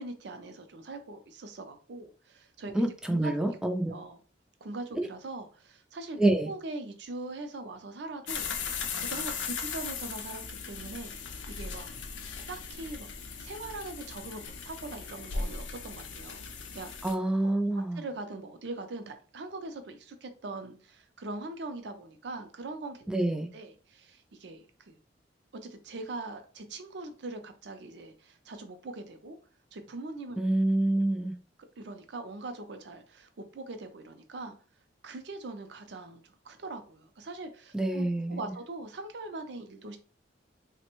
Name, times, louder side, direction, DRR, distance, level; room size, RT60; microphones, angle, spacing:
voice 1, 0.0-2.7 3.1-3.3 3.9-4.2 4.6-6.2 6.5-11.2 11.5-11.9 12.5-13.1 13.4-16.4 16.7-16.9 17.4-17.6 18.0-23.1 23.5-25.0 25.6-29.4 29.7-30.4 31.2-31.3 31.8-34.5 35.0-40.0, right 2 dB, 65° right, 7 dB, 0.5 m, -41 dB
voice 2, 2.7-3.9 5.0-5.1 6.2-6.5 17.0-18.0 23.1-23.5 30.4-31.3 37.7-38.5, right 1 dB, 5° right, 5 dB, 0.3 m, -27 dB
sound 1, 8.3-17.1, left 5 dB, 90° left, 0.5 m, -38 dB
3.3 x 2.1 x 2.9 m, 0.38 s
head